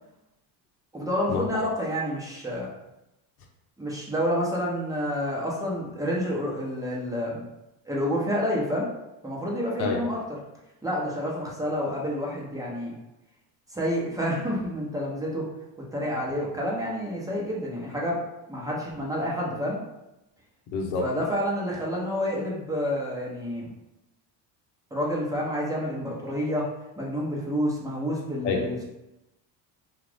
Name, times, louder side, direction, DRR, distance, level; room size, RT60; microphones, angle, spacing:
voice 1, 0.9-2.7 3.8-7.4 7.9-8.9 9.2-10.2 10.8-12.9 13.7-15.5 15.9-18.2 18.5-19.8 21.0-23.7 24.9-26.7 27.0-28.8, equal, 5° right, -4 dB, 1.0 m, -29 dB
voice 2, 20.7-21.1 28.4-28.6, left 4 dB, 75° left, 2 dB, 0.8 m, -27 dB
2.5 x 2.4 x 3.5 m, 0.93 s
supercardioid pair, 75°, 49 cm